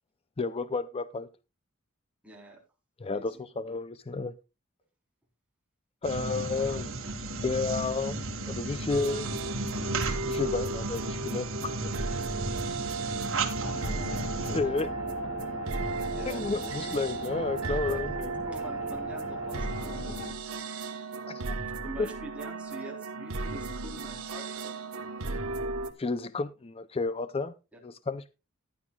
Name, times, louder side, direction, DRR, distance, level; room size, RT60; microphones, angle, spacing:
voice 1, 0.4-1.3 3.0-4.3 6.0-6.9 7.4-8.2 8.5-9.3 10.2-11.9 14.5-14.9 16.0-18.3 21.3-21.4 22.0-22.1 26.0-27.5 27.8-28.3, left 3 dB, 25° left, 0.5 m, -31 dB
voice 2, 2.2-2.6 3.1-3.3 13.1-13.3 13.6-14.1 14.5-14.7 16.1-16.7 17.8-18.2 18.4-20.7 21.8-24.7 27.7-27.8, right 1 dB, 5° right, 3.8 m, -45 dB
sound 1, 6.0-14.6, right 2 dB, 65° right, 2.0 m, -34 dB
sound 2, 8.9-25.9, right 3 dB, 85° right, 1.2 m, -35 dB
sound 3, 13.6-20.3, left 2 dB, 80° left, 2.1 m, -39 dB
15.5 x 10.5 x 2.3 m
head